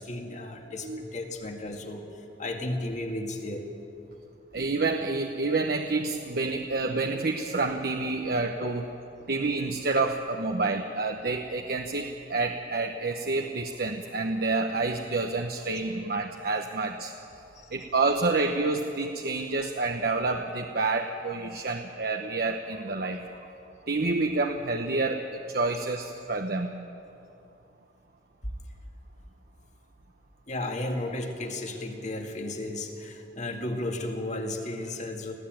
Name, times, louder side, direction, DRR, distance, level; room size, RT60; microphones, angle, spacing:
voice 1, 0.0-3.7 8.6-8.7 17.6-17.7 30.5-35.3, left 1 dB, 40° left, 3 dB, 2.0 m, -34 dB
voice 2, 4.5-8.8 9.3-17.1 17.7-23.3 23.9-26.8, right 3 dB, 60° right, 4 dB, 0.9 m, -28 dB
20.5 x 15.0 x 9.1 m, 2.8 s
head